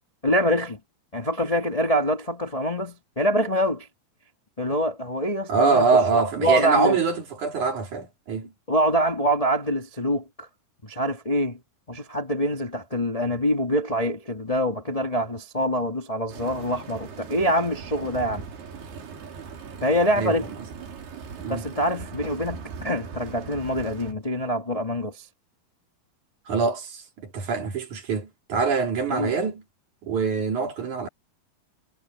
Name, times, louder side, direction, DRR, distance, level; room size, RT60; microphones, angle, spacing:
voice 1, 0.2-0.8 1.1-3.9 4.6-5.8 6.1-7.0 8.7-10.5 10.8-11.6 11.9-18.5 19.8-20.5 21.5-25.2 29.1-29.3, equal, 20° left, 1.0 m, -25 dB
voice 2, 5.5-8.5 20.2-20.4 21.4-21.7 26.5-29.6 30.0-31.1, right 4 dB, 55° right, 4.2 m, -24 dB
sound 1, 16.3-24.1, right 6 dB, 90° right, 5.6 m, -39 dB
omnidirectional pair, 4.4 m